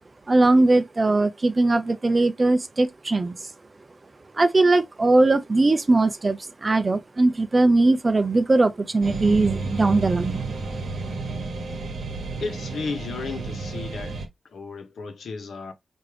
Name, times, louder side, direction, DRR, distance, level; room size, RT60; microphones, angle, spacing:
voice 1, 0.3-3.5 4.3-10.4, right 2 dB, 25° right, 0.4 m, -20 dB
sound 1, 9.0-14.3, right 3 dB, 65° right, 0.9 m, -31 dB
voice 2, 12.4-14.2 14.5-15.7, left 4 dB, 85° left, 0.9 m, -33 dB
4.7 x 2.6 x 3.2 m
wide cardioid pair, 170°, 0 cm